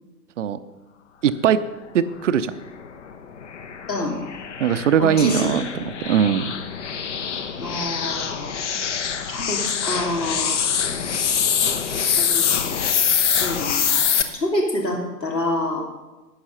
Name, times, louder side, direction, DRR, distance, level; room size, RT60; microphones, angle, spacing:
voice 1, 1.2-1.6 1.9-2.5 4.6-5.6 6.0-6.4, right 8 dB, 45° right, 12 dB, 0.7 m, -19 dB
sound 1, 2.7-14.2, left 7 dB, 45° left, 1.0 m, -24 dB
voice 2, 5.0-5.6 7.6-8.5 9.3-10.6 12.2-12.7 13.4-15.8, left 1 dB, 75° left, 0 dB, 3.3 m, -27 dB
11.5 x 8.7 x 5.7 m, 1.1 s
figure-of-eight pair, 120°, 50 cm